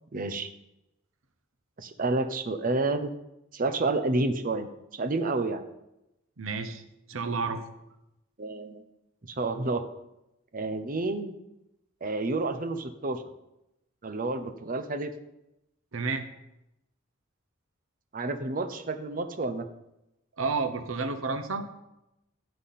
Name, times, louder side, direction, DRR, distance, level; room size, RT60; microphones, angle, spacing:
voice 1, 0.1-0.5 1.8-3.1 3.5-5.6 8.4-8.8 9.2-9.8 10.5-11.4 12.0-13.2 14.0-15.1 18.1-19.7, right 2 dB, 40° right, 9 dB, 0.8 m, -29 dB
voice 2, 6.4-6.8 7.1-7.6 15.9-16.3 20.4-21.7, right 4 dB, 75° right, 9 dB, 0.9 m, -30 dB
15.5 x 5.9 x 4.2 m, 0.89 s
head